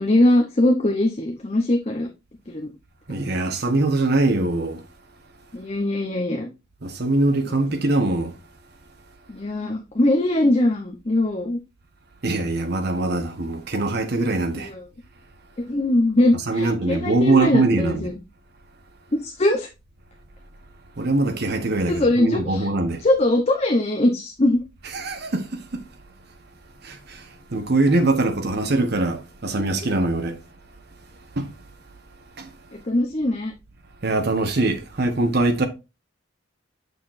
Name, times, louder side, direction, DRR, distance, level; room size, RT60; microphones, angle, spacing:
voice 1, 0.0-2.1 2.5-2.7 5.5-6.5 9.3-11.6 14.5-14.8 15.6-18.1 19.1-19.7 21.9-22.7 23.0-24.6 29.6-29.7 32.7-33.5, left 1 dB, 35° left, 0.8 m, -21 dB
voice 2, 3.1-4.9 6.8-8.4 12.2-14.7 16.5-18.1 21.0-23.0 24.9-25.9 26.8-30.4 31.4-31.5 32.4-32.5 34.0-35.7, right 2 dB, 55° right, 1.2 m, -22 dB
6.6 x 6.5 x 2.6 m
head